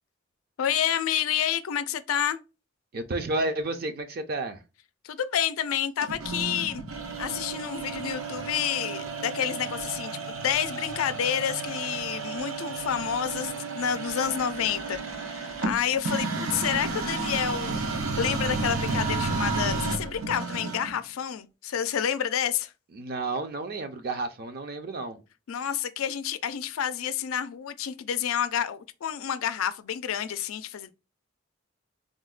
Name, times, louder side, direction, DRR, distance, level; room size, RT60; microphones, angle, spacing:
voice 1, 0.6-2.4 5.0-6.8 7.2-22.7 25.5-30.9, left 9 dB, 90° left, 0.4 m, -29 dB
voice 2, 2.9-4.6 22.9-25.2, right 2 dB, 45° right, 0.4 m, -31 dB
sound 1, 6.0-21.0, right 3 dB, 85° right, 0.7 m, -32 dB
3.7 x 2.1 x 2.3 m
head